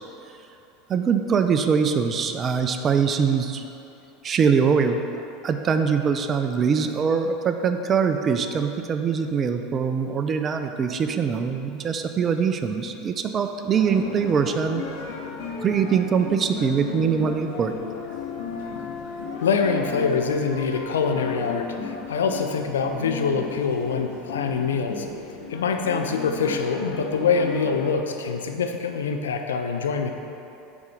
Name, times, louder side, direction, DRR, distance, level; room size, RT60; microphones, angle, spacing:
voice 1, 0.9-3.6 4.2-5.0 5.4-14.8 15.6-17.8, right 6 dB, 35° right, 7 dB, 0.4 m, -23 dB
sound 1, 13.7-27.9, left 4 dB, 65° left, 0.9 m, -35 dB
voice 2, 19.4-25.1 25.5-30.1, left 5 dB, 80° left, 5 dB, 0.5 m, -25 dB
7.1 x 4.3 x 5.0 m, 2.8 s
hypercardioid pair, 80°, 0 cm